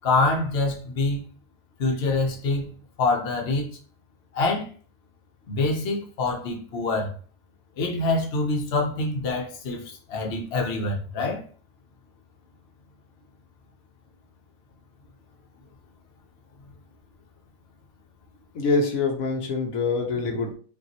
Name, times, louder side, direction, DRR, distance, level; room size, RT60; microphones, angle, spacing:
voice 1, 0.0-1.2 1.8-3.7 4.3-4.7 5.5-7.1 7.8-11.4, left 3 dB, 50° left, 1.0 m, -25 dB
voice 2, 18.5-20.5, left 4 dB, 75° left, 1.2 m, -25 dB
5.3 x 2.6 x 2.9 m
omnidirectional pair, 1.5 m